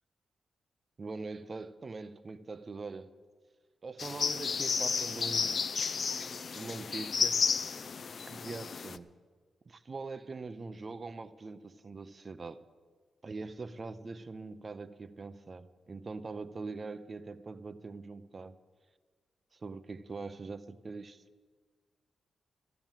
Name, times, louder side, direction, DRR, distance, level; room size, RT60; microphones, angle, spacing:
voice 1, 1.0-3.1 3.8-5.7 6.5-7.5 8.3-9.1 9.7-12.6 13.2-18.6 19.5-21.2, right 3 dB, 35° right, 0.6 m, -42 dB
sound 1, 4.0-9.0, left 5 dB, 45° left, 0.5 m, -32 dB
14.5 x 12.0 x 7.4 m
wide cardioid pair, 125°, 0 cm